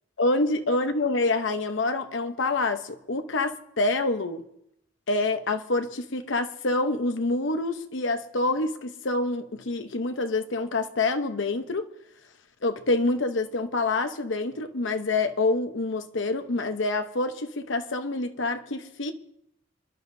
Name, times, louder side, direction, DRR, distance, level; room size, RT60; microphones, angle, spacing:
voice 1, 0.2-4.4 5.1-11.9 12.6-19.1, left 2 dB, 70° left, 0.9 m, -27 dB
26.5 x 11.5 x 2.7 m
head